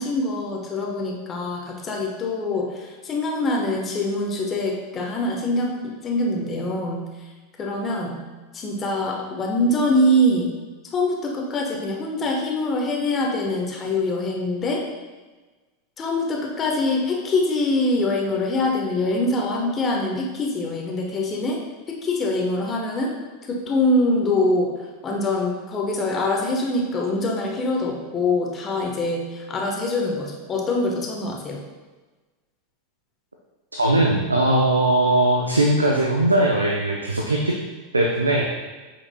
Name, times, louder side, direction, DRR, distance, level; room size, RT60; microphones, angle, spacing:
voice 1, 0.0-7.1 7.6-8.2 8.5-10.5 10.9-14.8 16.0-21.6 21.9-23.1 23.5-24.7 25.0-31.6, left 1 dB, 25° left, 0 dB, 1.1 m, -24 dB
voice 2, 33.8-37.5 37.9-38.4, right 1 dB, 85° right, 1 dB, 0.5 m, -19 dB
7.9 x 5.8 x 2.2 m, 1.3 s
figure-of-eight pair, 85°, 0 cm